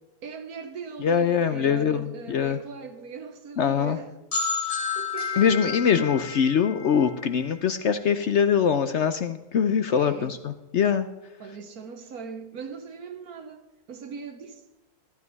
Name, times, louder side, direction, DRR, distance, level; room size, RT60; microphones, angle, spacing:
voice 1, 0.2-4.1 4.8-6.1 9.9-10.4 11.4-13.6 13.9-14.6, right 5 dB, 70° right, 1.5 m, -40 dB
voice 2, 1.0-2.6 3.6-4.0 5.4-11.1, left 7 dB, 60° left, 0.8 m, -23 dB
sound 1, 4.3-8.0, left 5 dB, 30° left, 0.8 m, -31 dB
13.0 x 13.0 x 4.0 m
omnidirectional pair, 1.7 m